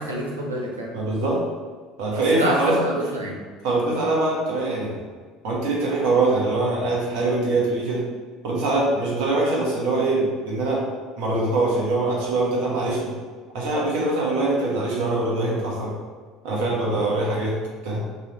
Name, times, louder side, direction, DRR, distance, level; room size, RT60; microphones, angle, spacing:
voice 1, 0.0-0.9 2.3-3.4, right 1 dB, 90° right, -2 dB, 0.8 m, -27 dB
voice 2, 0.9-1.4 2.0-2.8 3.6-5.0 5.4-8.0 8.4-10.9 11.2-13.1 13.5-15.9 16.4-17.6 17.8-18.0, right 2 dB, 65° right, -3 dB, 1.3 m, -23 dB
5.4 x 3.3 x 2.9 m, 1.5 s
figure-of-eight pair, 65°, 0 cm